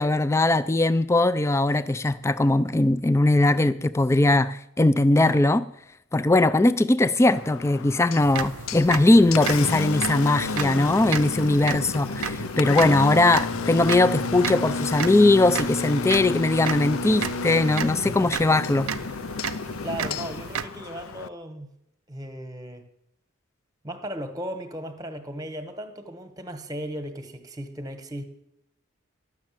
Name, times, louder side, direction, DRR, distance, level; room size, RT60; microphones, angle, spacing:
voice 1, 0.0-5.6 6.1-18.9, left 2 dB, 15° left, 0.3 m, -20 dB
Engine, 7.2-21.3, left 4 dB, 70° left, 0.5 m, -31 dB
sound 1, 8.2-20.7, right 7 dB, 80° right, 0.6 m, -34 dB
voice 2, 19.8-21.7 22.1-22.9 23.8-28.2, right 1 dB, 15° right, 1.1 m, -36 dB
12.0 x 6.4 x 9.0 m
head